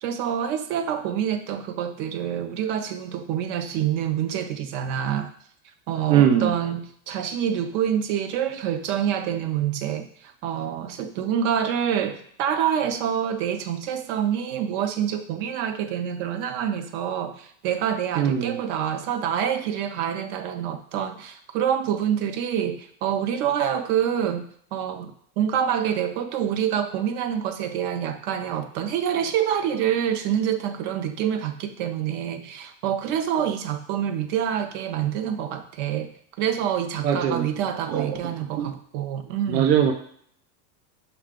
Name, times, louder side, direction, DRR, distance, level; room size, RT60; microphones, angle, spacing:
voice 1, 0.0-5.3 5.9-36.1 36.4-39.7, right 9 dB, 50° right, 8 dB, 0.5 m, -26 dB
voice 2, 6.1-6.5 18.1-18.6 37.0-37.5 37.9-38.2 38.6-38.7 39.5-39.9, right 8 dB, 85° right, 5 dB, 0.7 m, -21 dB
5.6 x 2.3 x 3.6 m, 0.63 s
supercardioid pair, 145°, 50 cm